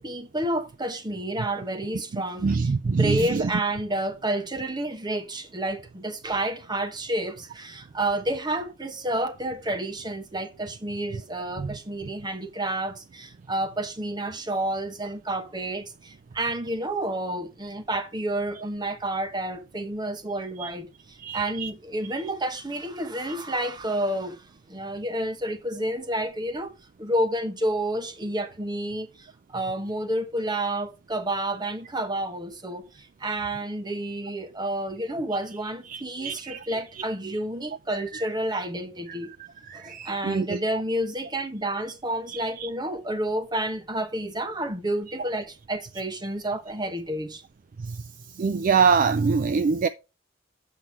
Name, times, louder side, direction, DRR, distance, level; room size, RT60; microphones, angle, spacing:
voice 1, 0.0-26.7 27.0-39.3 39.7-47.4, right 1 dB, 20° right, 1.1 m, -30 dB
voice 2, 2.4-3.4 11.6-11.7 20.6-20.7 21.2-21.7 35.9-36.6 38.1-38.2 39.7-40.6 42.3-42.7 47.8-48.0 48.4-49.9, right 5 dB, 45° right, 0.4 m, -24 dB
7.9 x 5.7 x 4.4 m
head